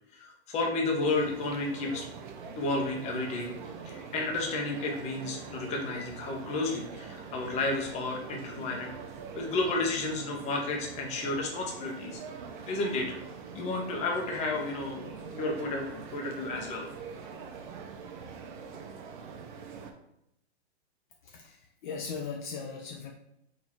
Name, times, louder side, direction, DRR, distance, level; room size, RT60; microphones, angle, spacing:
voice 1, 0.1-2.1 2.6-3.5 3.8-8.9 9.3-12.2 12.7-13.2 13.5-16.9, left 2 dB, 20° left, 1 dB, 0.8 m, -32 dB
sound 1, 1.0-19.9, right 5 dB, 45° right, 0.7 m, -44 dB
voice 2, 21.2-23.1, left 5 dB, 45° left, 2 dB, 0.6 m, -38 dB
4.1 x 2.7 x 4.6 m, 0.80 s
hypercardioid pair, 135°, 33 cm